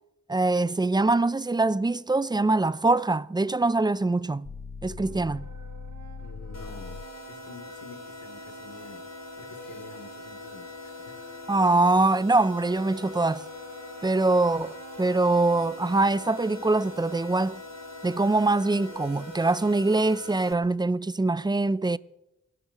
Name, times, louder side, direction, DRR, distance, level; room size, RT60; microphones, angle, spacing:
voice 1, 0.3-4.5 4.8-5.5 11.5-13.4 14.0-17.6 18.0-22.0, right 2 dB, 15° right, 0.5 m, -23 dB
sound 1, 4.4-7.2, left 4 dB, 35° left, 0.8 m, -40 dB
Wind instrument woodwind instrument, 5.0-20.5, right 5 dB, 65° right, 1.3 m, -50 dB
voice 2, 6.2-7.0 7.3-9.0 9.4-11.2, left 4 dB, 75° left, 3.1 m, -47 dB
sound 2, 6.5-20.5, left 3 dB, 60° left, 2.4 m, -43 dB
28.5 x 12.5 x 3.0 m
cardioid pair, 50°, 30 cm